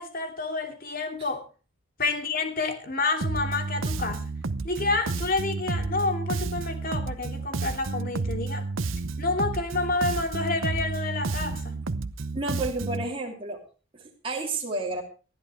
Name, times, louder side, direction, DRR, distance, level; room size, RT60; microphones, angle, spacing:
voice 1, 0.0-1.4 2.0-4.3 4.6-8.7 9.2-11.8, left 3 dB, 45° left, 5 dB, 2.9 m, -29 dB
Bass guitar, 3.2-13.1, right 3 dB, 75° right, 0.8 m, -31 dB
voice 2, 12.3-13.6 13.9-15.0, right 2 dB, 25° right, -1 dB, 3.0 m, -31 dB
19.5 x 13.5 x 3.3 m, 0.35 s
head